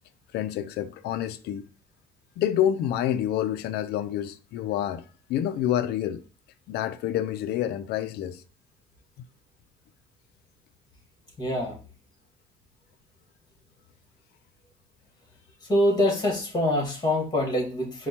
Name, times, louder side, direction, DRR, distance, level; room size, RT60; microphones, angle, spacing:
voice 1, 0.3-1.7 2.4-5.0 5.3-6.2 6.7-8.4, left 11 dB, 75° left, 0.4 m, -28 dB
voice 2, 11.4-11.8 15.7-18.1, left 1 dB, 25° left, 1.7 m, -24 dB
4.3 x 2.3 x 4.2 m
cardioid pair, 110°, 17 cm